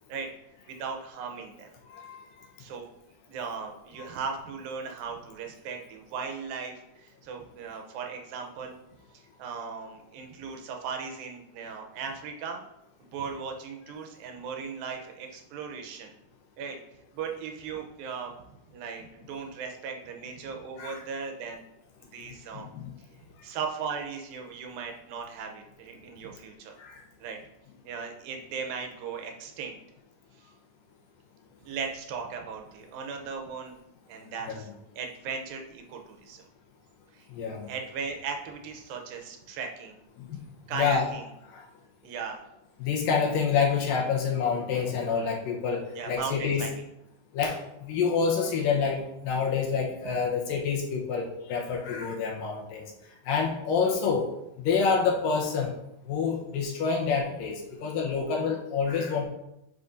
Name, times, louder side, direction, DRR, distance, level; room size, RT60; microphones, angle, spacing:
voice 1, 0.7-1.7 2.6-2.9 3.3-8.8 9.1-12.6 13.1-16.1 16.6-16.8 17.1-18.3 18.7-21.6 22.1-22.7 23.4-26.8 27.2-27.4 27.9-29.8 31.7-33.8 34.1-34.7 35.0-36.5 37.1-37.3 37.7-39.9 40.7-41.3 42.0-42.4 45.9-46.8, right 5 dB, 85° right, 3 dB, 2.4 m, -37 dB
voice 2, 1.9-2.2 20.8-21.0 22.5-22.9 26.8-27.0 34.5-34.6 37.3-37.7 40.2-40.4 40.7-41.1 41.5-41.7 42.8-46.7 47.3-52.9 53.3-54.3 54.6-55.7 56.1-59.3, left 5 dB, 75° left, -1 dB, 2.5 m, -27 dB
9.4 x 5.0 x 2.6 m, 0.86 s
omnidirectional pair, 4.2 m